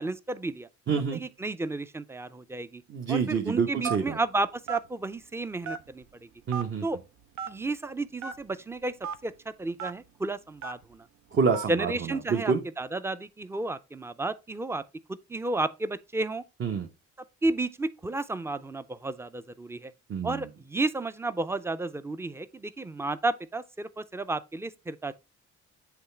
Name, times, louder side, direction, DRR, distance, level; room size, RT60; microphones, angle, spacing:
voice 1, 0.0-0.7 1.1-2.8 3.1-6.0 6.8-7.0 7.5-8.9 9.2-9.3 9.6-11.0 11.7-14.8 15.1-16.4 17.4-19.9 20.2-25.1, right 2 dB, 10° right, 0.5 m, -32 dB
voice 2, 0.9-1.2 2.9-4.2 6.5-6.8 11.3-11.9 12.3-12.6 16.6-16.9 20.1-20.5, right 5 dB, 40° right, 0.9 m, -27 dB
Telephone, 3.8-4.2 4.7-4.9 5.6-6.0 6.5-6.6 7.4-7.5 8.2-8.3 9.0-9.2 9.8-9.9 10.6-10.8 11.5-11.7, right 7 dB, 70° right, 0.8 m, -34 dB
8.0 x 3.2 x 4.3 m
cardioid pair, 90°, 30 cm